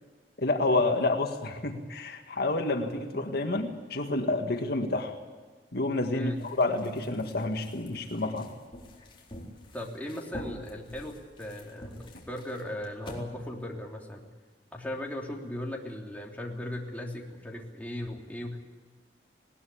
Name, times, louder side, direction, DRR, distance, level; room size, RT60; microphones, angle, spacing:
voice 1, 0.4-5.1 5.7-8.5, left 2 dB, 65° left, 4 dB, 1.8 m, -29 dB
sound 1, 6.3-13.2, left 1 dB, 30° left, 4.3 m, -47 dB
voice 2, 9.7-14.3 14.7-18.6, left 1 dB, 10° left, -1 dB, 3.3 m, -37 dB
20.5 x 19.0 x 8.6 m, 1.4 s
head